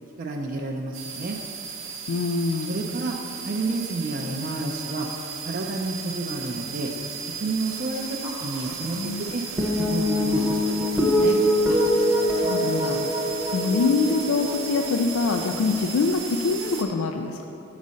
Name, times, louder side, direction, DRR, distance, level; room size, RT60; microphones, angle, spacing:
voice 1, 0.2-1.4 2.7-3.2 3.4-5.1 5.4-6.9 7.4-9.4 9.7-11.4, right 3 dB, 40° right, 1 dB, 0.4 m, -30 dB
sound 1, 0.9-16.8, right 6 dB, 65° right, 0.8 m, -36 dB
voice 2, 2.1-2.8 8.2-9.2 11.7-11.8 12.3-13.0 13.5-17.5, left 4 dB, 75° left, 4 dB, 0.4 m, -25 dB
sound 2, 9.6-16.2, equal, 15° right, 0.7 m, -24 dB
7.2 x 4.0 x 6.3 m, 3.0 s
head